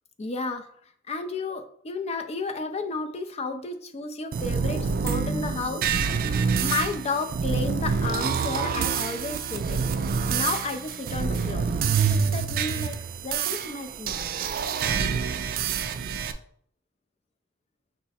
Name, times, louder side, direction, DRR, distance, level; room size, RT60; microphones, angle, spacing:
voice 1, 0.2-0.7 1.1-9.8 10.3-14.3, left 3 dB, 30° left, 7 dB, 0.4 m, -32 dB
sound 1, 4.3-16.3, right 6 dB, 45° right, 0.3 m, -27 dB
5.5 x 2.1 x 4.1 m, 0.62 s
head